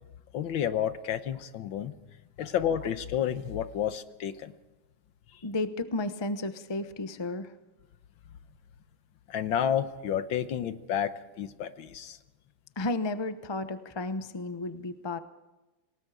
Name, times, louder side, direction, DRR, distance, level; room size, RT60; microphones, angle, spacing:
voice 1, 0.3-1.9 2.4-4.5 9.3-12.2, left 9 dB, 75° left, 11 dB, 1.7 m, -30 dB
voice 2, 5.4-7.5 12.8-15.2, left 2 dB, 25° left, 10 dB, 0.5 m, -33 dB
27.5 x 19.0 x 4.9 m, 1.1 s
omnidirectional pair, 2.2 m